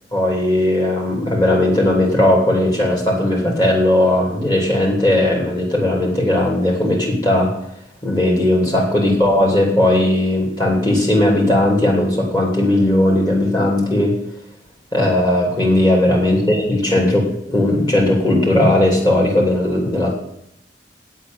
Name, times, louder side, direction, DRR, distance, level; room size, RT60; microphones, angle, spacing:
voice 1, 0.1-7.5 8.0-14.2 14.9-20.1, left 1 dB, 25° left, -2 dB, 3.0 m, -17 dB
9.2 x 8.0 x 9.0 m, 0.78 s
head